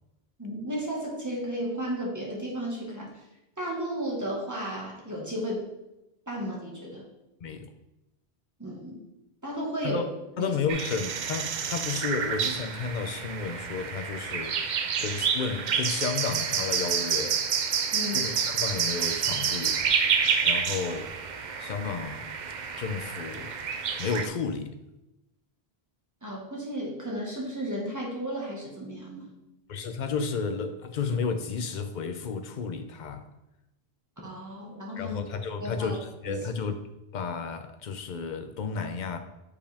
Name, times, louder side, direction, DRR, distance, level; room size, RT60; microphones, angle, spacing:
voice 1, 0.4-3.1 3.6-5.6 6.3-7.1 8.6-9.0 9.4-10.0 10.4-10.5 17.9-18.3 26.2-29.3 34.2-35.2 35.6-35.9 36.2-36.4, equal, 15° right, -3 dB, 1.6 m, -33 dB
voice 2, 7.4-7.7 9.8-10.0 10.4-17.4 18.1-19.8 20.4-21.1 21.6-22.2 22.8-23.5 24.0-24.7 29.7-33.3 35.0-36.8 37.1-39.2, left 5 dB, 55° left, 9 dB, 0.7 m, -32 dB
sound 1, 10.7-24.3, right 7 dB, 55° right, 0.6 m, -29 dB
6.8 x 5.0 x 3.4 m, 0.93 s
omnidirectional pair, 1.1 m